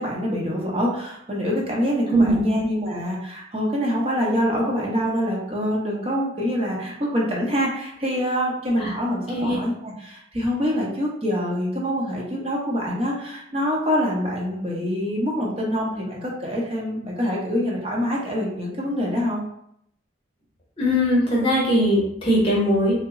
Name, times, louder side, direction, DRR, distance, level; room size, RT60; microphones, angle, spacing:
voice 1, 0.0-19.4, equal, 30° right, -3 dB, 0.8 m, -25 dB
voice 2, 2.1-2.5 8.8-8.9 9.3-9.6 20.8-23.0, equal, 30° left, -5 dB, 0.7 m, -20 dB
2.9 x 2.1 x 3.6 m, 0.73 s
head